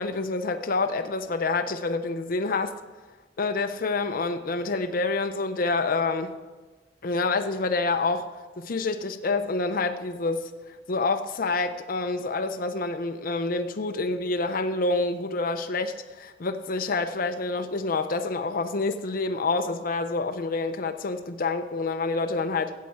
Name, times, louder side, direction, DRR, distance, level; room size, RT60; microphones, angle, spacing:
voice 1, 0.0-2.8 3.4-6.3 7.0-10.5 10.9-22.7, left 3 dB, 50° left, 7 dB, 0.6 m, -27 dB
15.5 x 7.5 x 4.5 m, 1.3 s
head